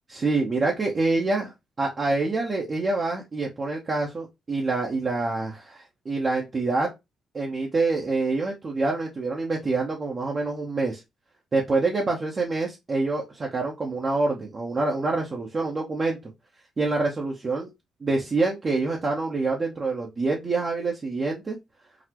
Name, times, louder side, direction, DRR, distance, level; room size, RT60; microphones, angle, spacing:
voice 1, 0.1-6.9 7.3-11.0 11.5-16.3 16.8-17.7 18.0-21.6, right 3 dB, 35° right, -1 dB, 0.8 m, -26 dB
4.0 x 2.0 x 2.9 m, 0.21 s
cardioid pair, 90°, 0 cm